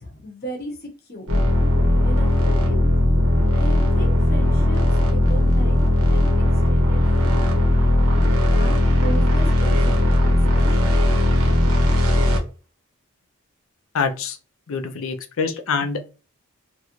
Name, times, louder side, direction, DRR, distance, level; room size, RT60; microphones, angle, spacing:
voice 1, 0.0-1.4 2.0-2.8 3.5-8.1 8.4-10.9, equal, 45° left, 0.9 m, -37 dB
sound 1, 1.3-12.4, left 1 dB, 75° right, 1.0 m, -18 dB
voice 2, 13.9-14.4 14.7-16.1, left 5 dB, 70° left, 0.5 m, -25 dB
3.0 x 2.4 x 3.0 m
head